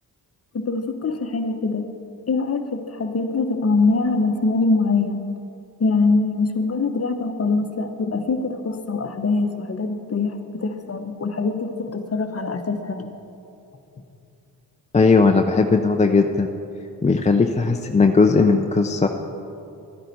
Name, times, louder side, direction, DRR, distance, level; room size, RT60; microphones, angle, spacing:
voice 1, 0.5-1.9 2.3-5.2 5.8-13.1, left 3 dB, 35° left, 7 dB, 1.0 m, -23 dB
voice 2, 14.9-16.5 17.0-19.1, left 4 dB, 15° left, 4 dB, 0.5 m, -17 dB
13.0 x 9.9 x 4.1 m, 2.7 s
supercardioid pair, 55°, 43 cm